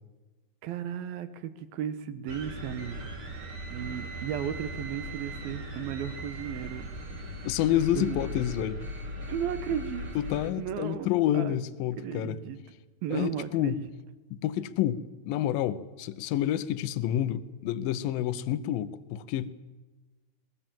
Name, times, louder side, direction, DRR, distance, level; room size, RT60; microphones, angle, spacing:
voice 1, 0.6-3.3 3.7-6.8 7.9-8.3 9.3-10.1 10.6-11.1 11.3-11.6 12.0-12.6 13.0-13.9, right 9 dB, 90° right, 12 dB, 3.0 m, -35 dB
sound 1, 2.3-10.5, equal, 40° right, 3.1 m, -39 dB
voice 2, 7.4-8.8 10.2-12.4 13.1-13.8 14.3-15.0 15.3-19.5, left 12 dB, 80° left, 14 dB, 2.5 m, -28 dB
22.5 x 20.0 x 7.6 m, 1.2 s
omnidirectional pair, 4.1 m